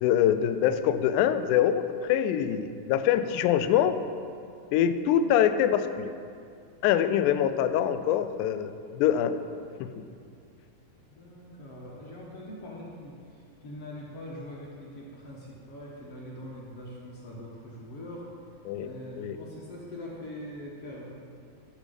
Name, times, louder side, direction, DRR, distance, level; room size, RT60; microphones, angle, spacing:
voice 1, 0.0-4.0 4.7-6.1 6.8-9.3 9.8-10.1 18.7-18.9 19.2-19.4, left 10 dB, 90° left, 10 dB, 1.7 m, -24 dB
voice 2, 11.1-18.3 18.8-21.1, left 1 dB, 60° left, -4 dB, 1.5 m, -43 dB
12.0 x 6.1 x 5.3 m, 2.2 s
omnidirectional pair, 4.1 m